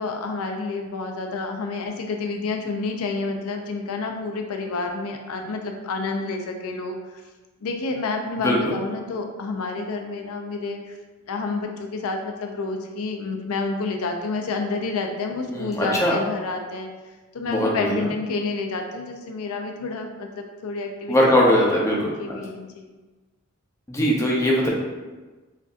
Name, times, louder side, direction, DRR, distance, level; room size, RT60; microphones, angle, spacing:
voice 1, 0.0-7.2 7.6-10.9 11.3-16.9 17.3-21.1 21.7-22.9, left 3 dB, 75° left, 4 dB, 0.4 m, -29 dB
voice 2, 8.4-8.7 15.5-16.2 17.5-18.1 21.1-22.4 23.9-24.7, equal, 15° left, -3 dB, 0.6 m, -21 dB
6.3 x 2.7 x 2.4 m, 1.3 s
head